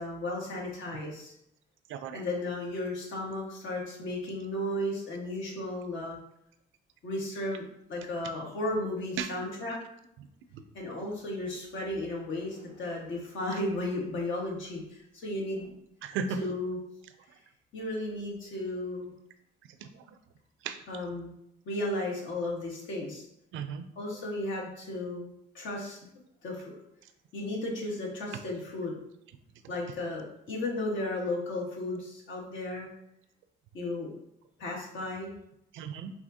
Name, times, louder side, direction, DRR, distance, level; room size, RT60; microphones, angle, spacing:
voice 1, 0.0-1.3 2.1-6.2 7.0-9.8 10.7-15.8 16.4-16.8 17.7-19.1 20.9-21.3 21.6-23.2 24.0-26.0 26.4-26.8 27.3-29.0 29.7-32.9 33.7-34.2 34.6-35.3, left 1 dB, 75° left, -2 dB, 1.4 m, -34 dB
voice 2, 1.9-2.2 9.2-9.3 10.5-10.6 16.0-16.4 19.8-20.2 20.6-20.8 23.5-23.8 35.7-36.1, right 6 dB, 80° right, 9 dB, 0.5 m, -35 dB
4.9 x 2.9 x 2.7 m, 0.78 s
cardioid pair, 90°, 20 cm